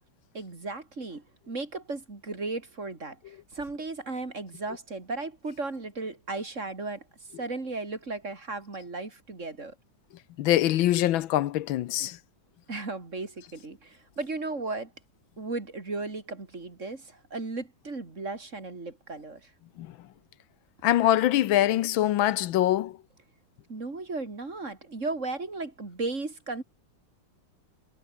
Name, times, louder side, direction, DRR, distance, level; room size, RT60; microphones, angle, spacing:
voice 1, 0.3-7.0 7.4-9.7 12.7-14.9 15.4-19.5 23.7-26.6, right 3 dB, 35° right, 3.3 m, -35 dB
voice 2, 10.4-12.2 19.8-19.9 20.8-23.0, left 13 dB, 80° left, 1.5 m, -24 dB
omnidirectional pair, 2.2 m